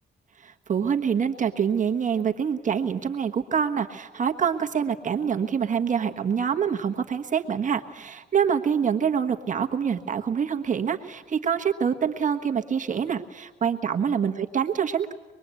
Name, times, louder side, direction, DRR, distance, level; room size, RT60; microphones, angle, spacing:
voice 1, 0.4-15.1, right 7 dB, 45° right, 5 dB, 1.3 m, -26 dB
25.5 x 21.5 x 8.3 m, 1.3 s
cardioid pair, 105°, 18 cm